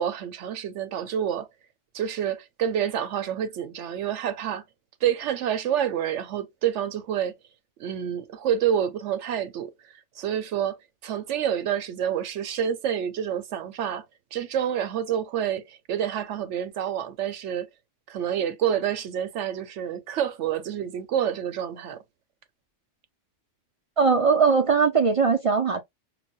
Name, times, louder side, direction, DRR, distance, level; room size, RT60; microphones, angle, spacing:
voice 1, 0.0-1.5 1.9-4.6 5.0-7.3 7.8-9.7 10.2-14.1 14.3-17.7 18.1-22.0, right 9 dB, 80° right, 1.0 m, -28 dB
voice 2, 24.0-25.8, right 5 dB, 55° right, 0.4 m, -20 dB
5.9 x 2.1 x 2.3 m
omnidirectional pair, 1.2 m